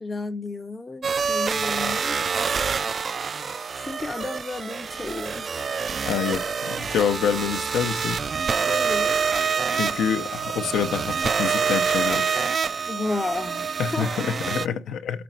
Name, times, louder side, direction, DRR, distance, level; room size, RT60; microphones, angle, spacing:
voice 1, 0.0-2.2 3.8-5.6 8.7-9.2 12.9-14.8, left 3 dB, 25° left, 0.5 m, -33 dB
sound 1, 1.0-14.7, right 6 dB, 40° right, 0.3 m, -26 dB
voice 2, 6.1-8.2 9.7-12.5 13.8-15.2, left 8 dB, 80° left, 0.6 m, -27 dB
5.1 x 4.0 x 5.8 m
cardioid pair, 90°, 0 cm